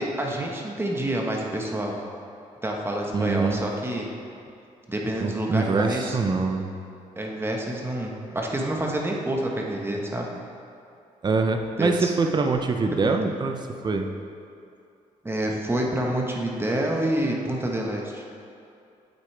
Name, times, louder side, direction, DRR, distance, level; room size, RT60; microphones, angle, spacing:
voice 1, 0.0-2.0 2.6-4.1 4.9-6.2 7.2-10.3 11.8-12.1 13.0-13.2 15.2-18.2, right 1 dB, 15° right, -1 dB, 1.3 m, -28 dB
voice 2, 3.1-3.6 5.2-6.7 11.2-14.1, right 4 dB, 30° right, 5 dB, 0.7 m, -24 dB
8.4 x 8.1 x 3.4 m, 2.5 s
cardioid pair, 85°, 14 cm